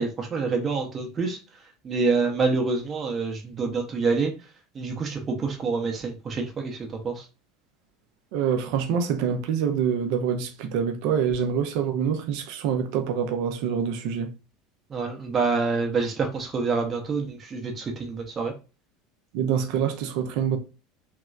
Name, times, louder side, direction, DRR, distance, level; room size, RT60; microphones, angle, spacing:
voice 1, 0.0-1.4 1.8-4.3 4.7-6.8 7.0-7.2 14.9-18.5, right 4 dB, 30° right, 0.8 m, -26 dB
voice 2, 8.3-14.3 19.3-20.6, right 7 dB, 55° right, 0.6 m, -26 dB
3.0 x 2.9 x 2.4 m
figure-of-eight pair, 70°, 0 cm